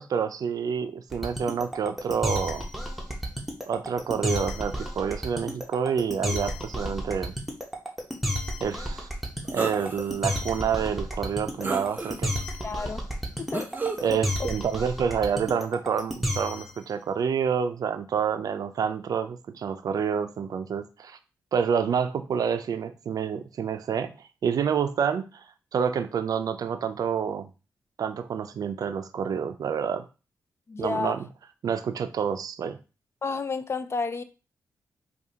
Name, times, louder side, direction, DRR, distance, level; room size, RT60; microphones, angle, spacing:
voice 1, 0.0-2.6 3.7-7.3 8.6-9.1 9.4-12.3 14.0-21.2 21.5-24.1 24.4-25.4 25.7-27.5 28.0-30.0 30.8-31.3 31.6-32.8, right 7 dB, 70° right, 0.4 m, -28 dB
sound 1, 1.1-16.8, equal, ahead, 0.9 m, -31 dB
sound 2, 9.5-10.1 10.7-10.8 11.6-12.4 13.5-14.1, right 3 dB, 25° right, 0.6 m, -32 dB
voice 2, 12.6-13.1 13.4-13.7 30.7-31.1 33.2-34.2, left 4 dB, 40° left, 0.4 m, -30 dB
4.7 x 2.3 x 2.8 m
cardioid pair, 60°, 7 cm